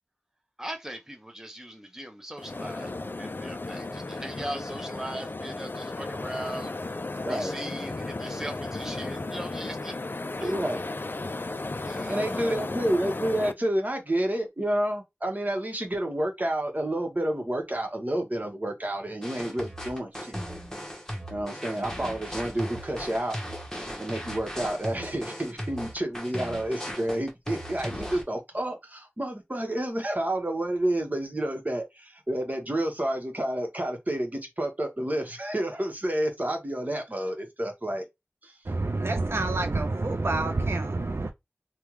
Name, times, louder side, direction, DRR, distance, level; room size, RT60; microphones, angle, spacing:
voice 1, 0.6-6.9 7.3-10.9 11.8-12.6, right 1 dB, 10° right, 0.8 m, -40 dB
sound 1, 2.4-13.5, left 2 dB, 50° left, 0.4 m, -34 dB
voice 2, 10.4-10.8 12.1-20.4 21.3-23.4 24.0-38.0 38.4-38.5, right 1 dB, 40° right, 1.2 m, -29 dB
sound 2, 19.2-28.2, equal, 10° left, 1.1 m, -37 dB
voice 3, 38.6-41.3, right 2 dB, 65° right, 0.4 m, -27 dB
3.4 x 2.3 x 3.0 m
wide cardioid pair, 45°, 4 cm